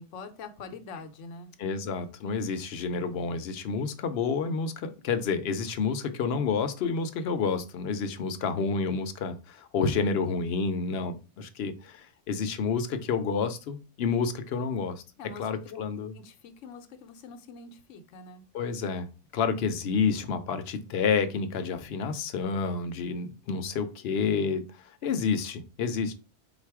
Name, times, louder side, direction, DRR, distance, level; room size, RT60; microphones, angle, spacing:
voice 1, 0.0-1.5 15.2-15.8 16.1-18.4, left 4 dB, 85° left, 8 dB, 1.0 m, -44 dB
voice 2, 1.6-15.0 15.4-16.1 18.5-19.1 19.3-26.1, left 5 dB, 65° left, 10 dB, 0.7 m, -29 dB
3.8 x 2.4 x 4.6 m, 0.32 s
omnidirectional pair, 1.2 m